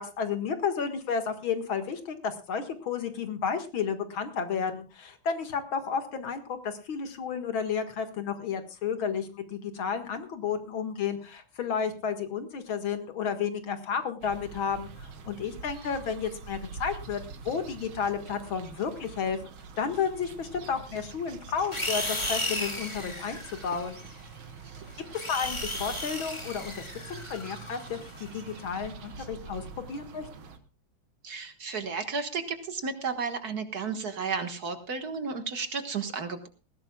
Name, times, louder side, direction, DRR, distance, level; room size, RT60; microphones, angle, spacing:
voice 1, 0.0-19.4 19.8-24.0 25.3-30.3, left 6 dB, 75° left, 8 dB, 2.5 m, -32 dB
sound 1, 14.2-30.6, right 4 dB, 80° right, 2.3 m, -45 dB
sound 2, 21.7-24.2 24.9-28.6, left 1 dB, 15° left, 2.4 m, -35 dB
voice 2, 31.2-36.5, right 5 dB, 50° right, 8 dB, 1.9 m, -33 dB
20.0 x 16.0 x 2.3 m, 0.33 s
omnidirectional pair, 2.2 m